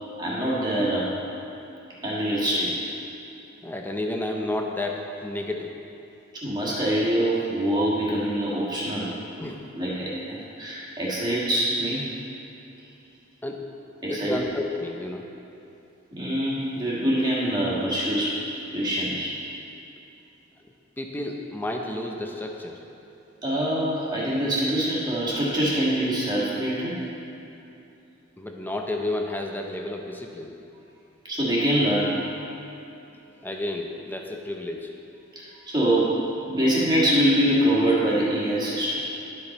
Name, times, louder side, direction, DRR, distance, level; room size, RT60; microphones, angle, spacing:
voice 1, 0.2-1.1 2.0-2.8 6.3-9.2 9.7-12.1 14.0-14.4 16.1-18.4 18.7-19.4 23.4-27.0 31.2-32.2 35.3-39.1, right 1 dB, 20° right, -7 dB, 1.6 m, -24 dB
voice 2, 3.6-5.7 9.4-9.7 13.4-13.7 14.1-15.3 21.0-22.8 28.4-30.5 33.4-34.9, left 1 dB, 10° left, 2 dB, 0.6 m, -31 dB
11.0 x 5.3 x 4.2 m, 2.8 s
head